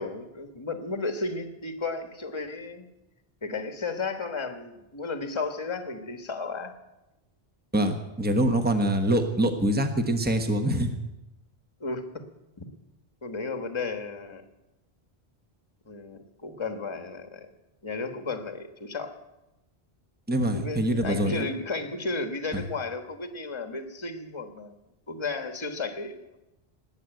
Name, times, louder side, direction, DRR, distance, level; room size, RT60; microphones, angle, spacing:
voice 1, 0.0-2.9 3.4-6.7 11.8-12.2 12.6-12.7 13.2-14.4 15.9-17.5 17.8-19.1 20.5-24.8 25.1-26.3, left 3 dB, 25° left, 7 dB, 1.4 m, -33 dB
voice 2, 7.7-11.0 20.3-21.5 22.5-22.6, right 1 dB, 10° right, 6 dB, 1.2 m, -25 dB
19.5 x 8.0 x 9.1 m, 0.97 s
omnidirectional pair, 1.1 m